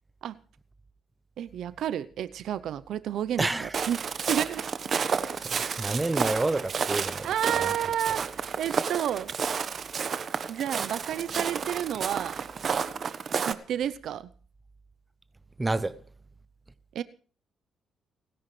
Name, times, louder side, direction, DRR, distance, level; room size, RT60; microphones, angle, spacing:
voice 1, 1.4-4.7 7.2-9.3 10.5-12.4 13.4-14.3 16.9-17.0, right 10 dB, 75° right, 0.7 m, -31 dB
voice 2, 3.4-3.7 5.4-7.3 7.6-7.7 15.6-16.0, right 2 dB, 15° right, 1.1 m, -29 dB
Walk footsteps, 3.7-13.5, right 6 dB, 50° right, 1.2 m, -31 dB
30.0 x 10.0 x 3.3 m
cardioid pair, 90°, 0 cm